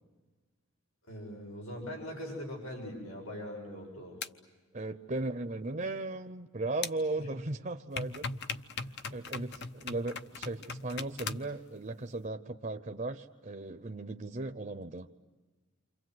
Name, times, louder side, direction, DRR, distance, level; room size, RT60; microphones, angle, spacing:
voice 1, 1.1-4.2 7.2-7.3 9.2-9.4, equal, 90° left, 1 dB, 6.9 m, -41 dB
sound 1, 4.2-4.3 6.8-6.9 8.0-11.5, left 4 dB, 50° left, 0.9 m, -38 dB
voice 2, 4.7-8.3 9.1-15.1, right 2 dB, 35° right, 6 dB, 0.8 m, -37 dB
29.0 x 26.0 x 7.9 m, 1.3 s
head